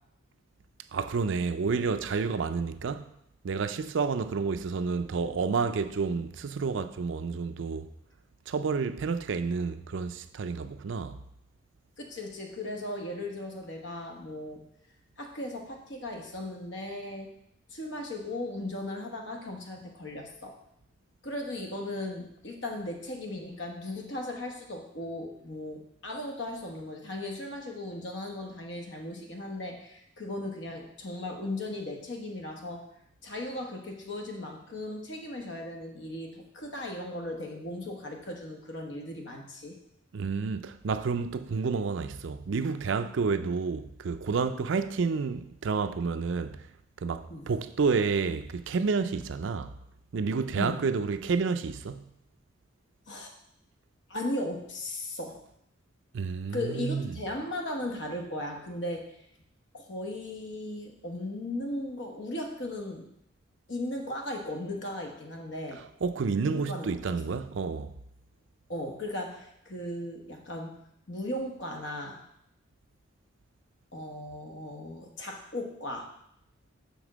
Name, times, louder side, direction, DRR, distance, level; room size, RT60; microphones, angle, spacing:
voice 1, 0.9-3.0 3.4-7.9 8.5-11.2 40.1-46.7 47.0-49.7 50.1-52.1 56.1-57.1 66.0-67.9, right 5 dB, 70° right, 0.4 m, -30 dB
voice 2, 12.0-14.6 15.2-17.3 17.7-20.6 21.2-32.8 33.2-39.8 47.3-47.5 50.5-50.9 53.1-53.3 54.1-55.4 56.5-59.2 59.7-63.1 63.7-65.8 66.4-67.2 68.7-72.2 73.9-76.1, left 1 dB, 65° left, 1.2 m, -37 dB
7.0 x 3.6 x 6.1 m
head